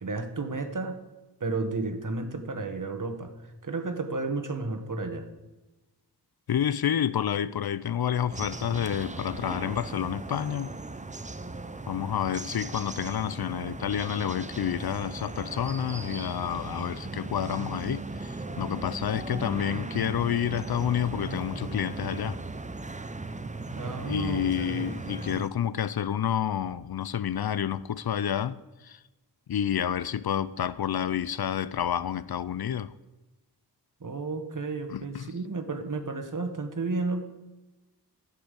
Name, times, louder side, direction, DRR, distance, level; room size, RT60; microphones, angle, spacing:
voice 1, 0.0-1.0 1.4-3.3 3.6-5.3 23.8-25.0 34.0-37.2, right 3 dB, 50° right, 1.4 m, -32 dB
voice 2, 6.5-10.7 11.9-22.4 24.1-29.0 29.5-32.9 34.9-35.3, left 9 dB, 65° left, 0.5 m, -29 dB
sound 1, 8.3-25.5, right 3 dB, 20° right, 0.7 m, -37 dB
14.0 x 5.6 x 8.2 m
wide cardioid pair, 80°, 41 cm